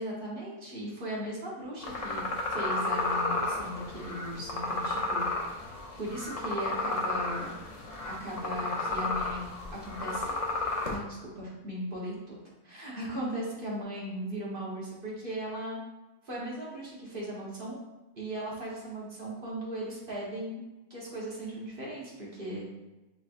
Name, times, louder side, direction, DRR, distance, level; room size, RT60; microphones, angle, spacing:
voice 1, 0.0-5.3 6.0-7.6 8.0-9.4 9.7-10.3 10.9-12.4 12.6-15.8 16.2-17.8 18.1-20.6 20.9-22.6, right 1 dB, 40° right, -5 dB, 1.2 m, -37 dB
sound 1, 1.8-11.0, left 2 dB, 50° left, 0.4 m, -32 dB
6.0 x 3.2 x 2.4 m, 1.1 s
omnidirectional pair, 1.5 m